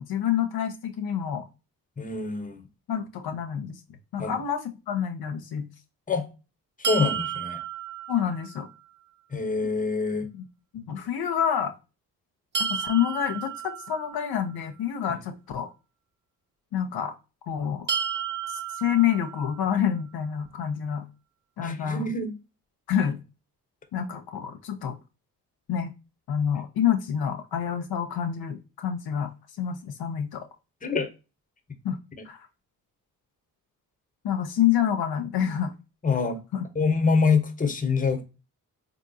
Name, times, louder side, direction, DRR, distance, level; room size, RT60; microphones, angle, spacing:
voice 1, 0.0-1.5 2.9-3.8 4.1-5.7 8.1-8.7 10.3-10.4 10.7-11.7 12.6-15.7 16.7-17.1 17.5-17.9 18.5-21.1 21.6-22.1 22.9-23.2 23.9-25.0 25.7-25.9 26.3-29.3 29.6-30.4 31.8-32.0 32.2-32.4 34.2-35.7 36.5-36.7, left 9 dB, 65° left, 0.6 m, -27 dB
voice 2, 2.0-2.6 4.2-4.3 6.1-6.3 6.8-7.6 9.3-10.3 21.6-22.3 30.8-31.1 36.0-36.4 36.7-38.2, left 4 dB, 20° left, 0.8 m, -25 dB
sound 1, 6.8-8.8 12.5-14.6 17.9-19.9, right 7 dB, 30° right, 0.4 m, -32 dB
3.6 x 2.8 x 2.6 m
supercardioid pair, 55°, 40 cm